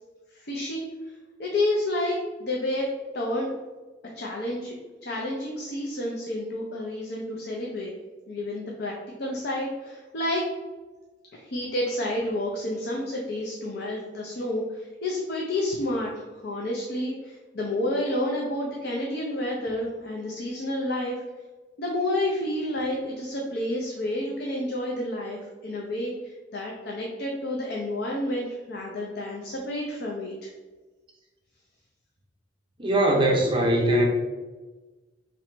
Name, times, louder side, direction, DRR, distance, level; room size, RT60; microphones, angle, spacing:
voice 1, 0.3-2.9 3.1-3.5 4.1-7.9 8.3-8.9 9.2-10.4 11.3-21.2 21.8-30.5, left 1 dB, 55° left, -1 dB, 0.5 m, -30 dB
voice 2, 32.8-34.1, right 1 dB, 25° right, 0 dB, 0.6 m, -21 dB
3.0 x 2.9 x 4.3 m, 1.3 s
head